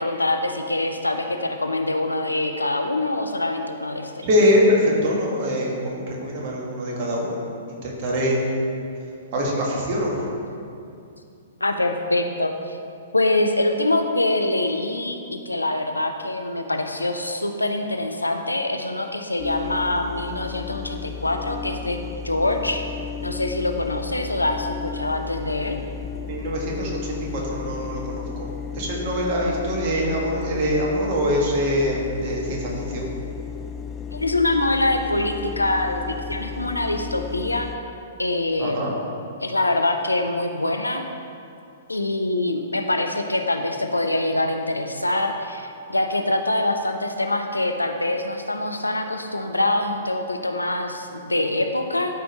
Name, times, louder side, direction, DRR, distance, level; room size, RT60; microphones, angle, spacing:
voice 1, 0.0-4.3 11.6-12.8 13.1-22.0 22.2-22.8 23.2-25.8 34.1-37.7 38.2-38.8 39.4-41.1 41.9-52.1, left 2 dB, 85° left, 5 dB, 0.6 m, -24 dB
voice 2, 4.2-7.4 7.7-8.4 9.3-10.1 26.3-28.2 28.7-33.1 38.6-38.9, equal, 45° right, -2 dB, 1.8 m, -23 dB
sound 1, 19.4-37.8, left 6 dB, 20° left, 0.5 m, -34 dB
12.5 x 5.1 x 3.1 m, 2.6 s
figure-of-eight pair, 115°, 0 cm